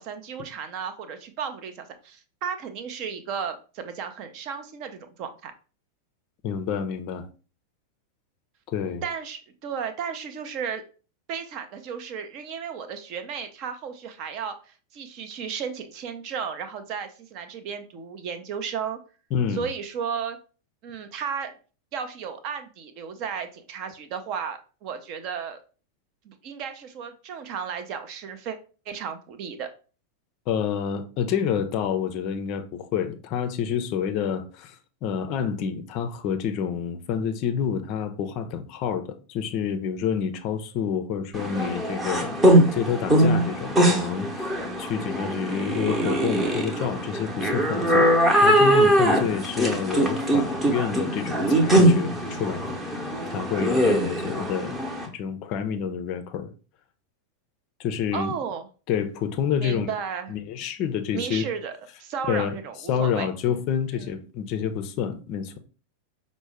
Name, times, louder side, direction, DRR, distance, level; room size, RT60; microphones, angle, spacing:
voice 1, 0.0-5.5 9.0-10.8 11.3-19.0 19.5-20.4 20.8-21.5 21.9-25.6 26.2-28.6 28.9-29.7 58.1-58.7 59.6-60.3 61.1-61.7 62.0-63.6 63.9-64.1, right 7 dB, 40° right, 0.5 m, -34 dB
voice 2, 6.4-7.3 8.7-9.0 19.3-19.7 30.5-48.1 48.4-54.8 55.1-56.5 57.8-58.4 58.9-59.9 60.3-61.5 62.3-62.6 62.9-65.6, left 7 dB, 40° left, 0.4 m, -28 dB
sound 1, 41.3-55.1, right 1 dB, 15° right, 0.8 m, -22 dB
5.1 x 2.1 x 3.3 m
figure-of-eight pair, 90°, 0 cm